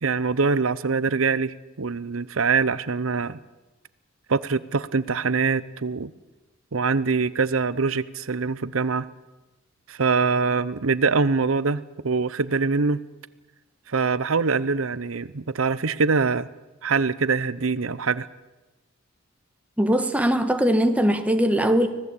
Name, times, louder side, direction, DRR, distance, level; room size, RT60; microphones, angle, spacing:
voice 1, 0.0-3.4 4.3-6.1 6.7-9.1 9.9-13.0 13.9-16.5 16.8-18.3, right 4 dB, 75° right, 0.8 m, -24 dB
voice 2, 19.8-21.9, equal, 5° right, 1.5 m, -20 dB
25.0 x 18.0 x 8.5 m
head